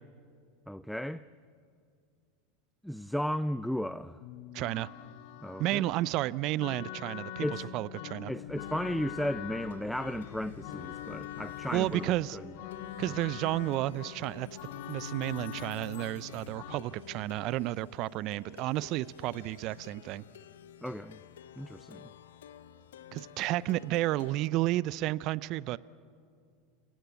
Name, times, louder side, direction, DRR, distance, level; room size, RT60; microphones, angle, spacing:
voice 1, 0.7-1.3 2.8-4.2 5.4-5.9 7.4-7.7 8.3-12.5 13.1-13.2 20.8-21.2 21.6-22.1, equal, ahead, 0.6 m, -35 dB
sound 1, 4.2-16.8, left 10 dB, 60° left, 1.4 m, -44 dB
voice 2, 4.5-4.9 5.6-7.4 7.7-8.3 11.7-12.4 13.0-14.5 14.9-20.2 23.1-25.8, right 16 dB, 55° right, 0.5 m, -31 dB
Plucked string instrument, 8.4-24.5, left 9 dB, 80° left, 1.0 m, -51 dB
30.0 x 18.0 x 8.3 m
hypercardioid pair, 90°, 0 cm